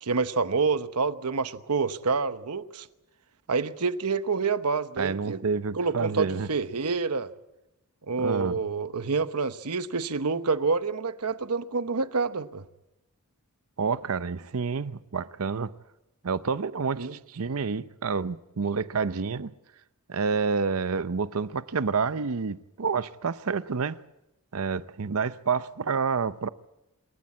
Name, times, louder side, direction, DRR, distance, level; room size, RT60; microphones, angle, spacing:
voice 1, 0.0-2.9 3.5-5.4 5.7-7.3 8.1-12.6 17.0-17.1, right 4 dB, 85° right, 1.0 m, -27 dB
voice 2, 5.0-6.5 8.2-8.6 13.8-15.7 16.2-19.5 20.1-24.0 24.5-26.5, right 5 dB, 70° right, 0.7 m, -29 dB
27.0 x 14.0 x 8.6 m
head